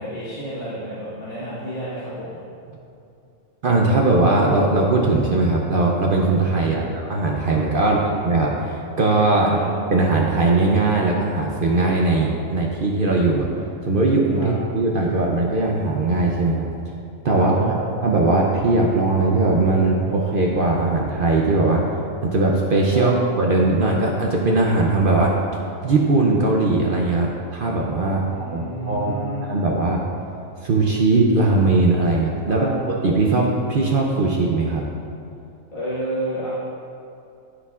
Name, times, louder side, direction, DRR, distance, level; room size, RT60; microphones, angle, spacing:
voice 1, 0.0-2.4 6.5-6.9 7.8-8.1 9.4-9.6 14.3-14.5 17.3-17.8 22.9-23.1 28.2-29.5 32.5-32.7 35.7-36.5, right 1 dB, 35° left, -12 dB, 1.6 m, -31 dB
voice 2, 3.6-8.0 8.2-13.5 13.8-16.7 17.2-21.9 22.2-25.3 25.8-28.2 28.5-29.1 29.5-30.0 30.6-34.8, right 2 dB, 55° right, -1 dB, 0.6 m, -19 dB
13.0 x 4.9 x 2.4 m, 2.6 s
omnidirectional pair, 1.4 m